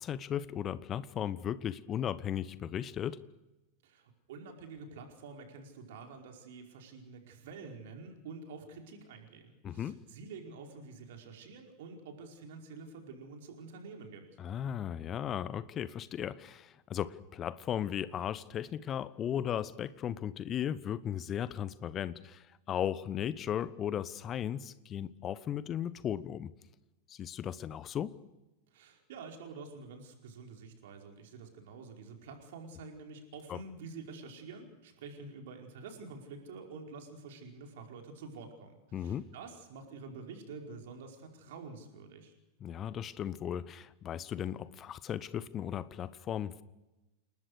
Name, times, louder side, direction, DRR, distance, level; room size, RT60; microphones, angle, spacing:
voice 1, 0.0-3.2 9.6-10.0 14.4-26.5 27.1-28.1 33.5-33.6 38.9-39.3 42.6-46.6, left 9 dB, 30° left, 17 dB, 1.1 m, -36 dB
voice 2, 3.8-14.3 28.7-42.3, right 4 dB, 55° right, 3 dB, 5.0 m, -48 dB
29.0 x 19.5 x 6.6 m, 1.0 s
figure-of-eight pair, 90°, 0 cm